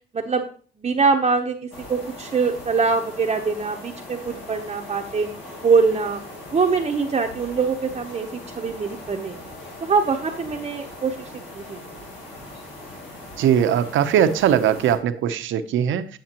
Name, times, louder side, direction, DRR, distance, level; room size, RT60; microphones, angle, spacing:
voice 1, 0.8-1.6 1.9-5.3 5.6-6.2 6.5-9.4 9.8-11.8, right 5 dB, 30° right, 2 dB, 0.7 m, -23 dB
sound 1, 1.7-15.0, left 1 dB, 80° left, 3.4 m, -40 dB
voice 2, 13.4-16.1, right 9 dB, 75° right, 11 dB, 0.7 m, -20 dB
8.9 x 7.2 x 2.9 m, 0.42 s
cardioid pair, 90°, 20 cm